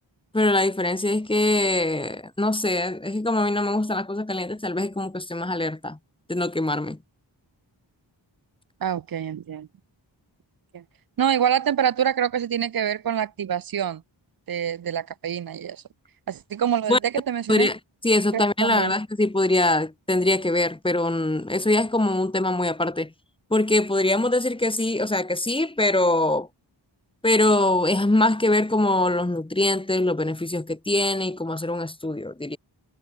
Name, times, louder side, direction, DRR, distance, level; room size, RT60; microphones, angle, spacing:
voice 1, 0.3-6.0 6.3-7.0 16.9-17.0 17.5-23.1 23.5-26.5 27.2-32.6, left 2 dB, 10° left, 0.8 m, -23 dB
voice 2, 8.8-9.7 10.7-10.8 11.2-14.0 14.5-15.8 16.3-17.7 18.3-18.9, right 9 dB, 50° right, 0.5 m, -26 dB
wide cardioid pair, 55°, 46 cm